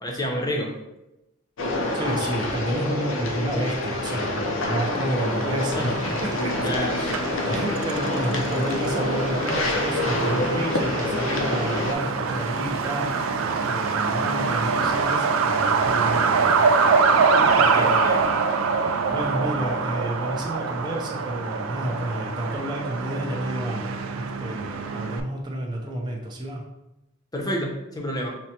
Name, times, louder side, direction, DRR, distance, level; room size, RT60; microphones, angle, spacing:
voice 1, 0.0-0.7 5.7-5.9 6.6-7.0 17.6-18.2 27.3-28.4, equal, 20° left, 0 dB, 0.6 m, -29 dB
sound 1, 1.6-11.9, left 2 dB, 80° left, 0.5 m, -27 dB
voice 2, 1.9-6.0 6.2-7.2 7.5-13.1 13.7-16.7 17.6-18.1 19.1-26.6, right 1 dB, 20° right, -2 dB, 0.5 m, -30 dB
Truck, 5.2-25.2, right 5 dB, 90° right, 0.4 m, -25 dB
6.0 x 2.1 x 2.8 m, 0.94 s
head